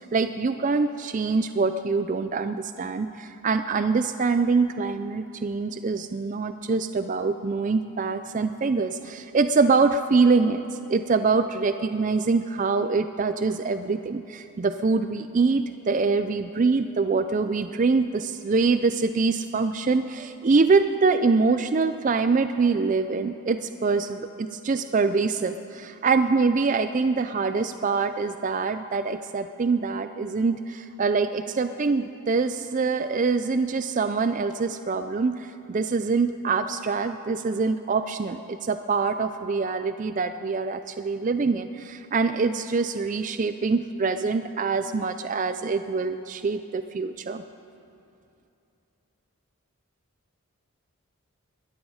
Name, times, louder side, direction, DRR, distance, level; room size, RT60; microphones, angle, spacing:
voice 1, 0.0-47.4, right 4 dB, 35° right, 10 dB, 0.3 m, -24 dB
21.5 x 13.5 x 4.9 m, 2.7 s
head